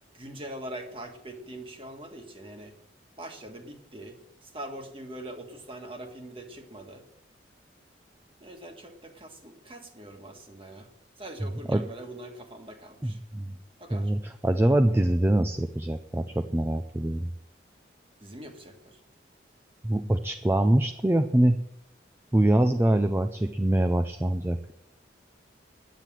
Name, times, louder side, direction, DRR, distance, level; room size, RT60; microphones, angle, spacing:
voice 1, 0.1-2.7 3.2-4.2 4.4-7.0 8.4-10.9 11.2-13.2 13.8-14.1 18.2-19.0, right 1 dB, 30° right, 4 dB, 1.6 m, -42 dB
voice 2, 13.0-13.5 13.9-17.3 19.8-21.6 22.3-24.6, right 1 dB, 15° right, 8 dB, 0.4 m, -24 dB
10.0 x 9.2 x 7.5 m, 0.84 s
head